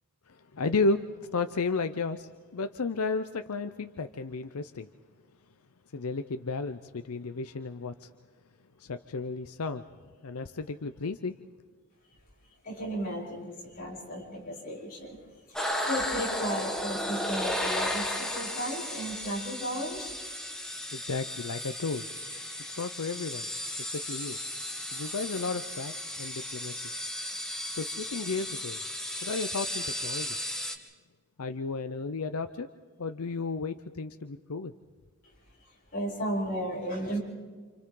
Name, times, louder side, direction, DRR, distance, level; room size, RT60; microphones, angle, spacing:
voice 1, 0.3-1.1 1.3-4.9 5.9-8.1 8.8-9.8 10.2-11.3 20.9-22.1 22.8-23.5 23.8-24.4 24.9-26.8 27.7-28.8 29.2-30.4 31.4-32.7 33.0-34.7, left 3 dB, 85° left, 9 dB, 0.7 m, -33 dB
voice 2, 12.7-15.2 15.8-20.1 35.9-37.2, equal, 40° left, -4 dB, 7.2 m, -34 dB
sound 1, 15.5-30.7, left 1 dB, 5° left, 1.6 m, -35 dB
29.0 x 28.0 x 3.9 m, 1.5 s
head